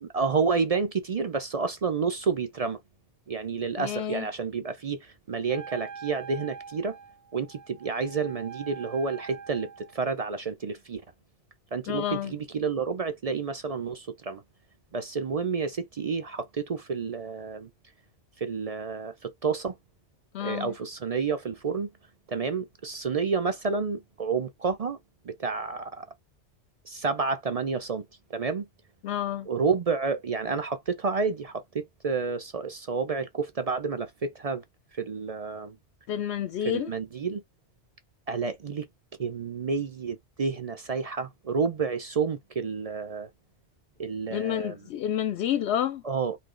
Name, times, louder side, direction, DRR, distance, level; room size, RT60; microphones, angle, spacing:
voice 1, 0.0-2.8 3.3-7.0 7.3-11.0 11.7-14.4 14.9-17.7 18.4-19.8 20.4-21.9 22.3-25.0 25.2-26.1 26.8-28.1 28.3-28.7 29.5-34.6 35.0-35.8 36.6-37.4 38.3-38.9 39.2-43.3 44.0-44.8 46.0-46.4, right 5 dB, 45° right, 0.5 m, -30 dB
voice 2, 3.8-4.3 11.9-12.3 20.3-20.7 29.0-29.5 36.1-36.9 44.3-46.0, left 10 dB, 75° left, 0.8 m, -29 dB
Wind instrument woodwind instrument, 5.5-10.0, right 6 dB, 85° right, 1.2 m, -44 dB
4.1 x 2.8 x 3.7 m
omnidirectional pair, 1.1 m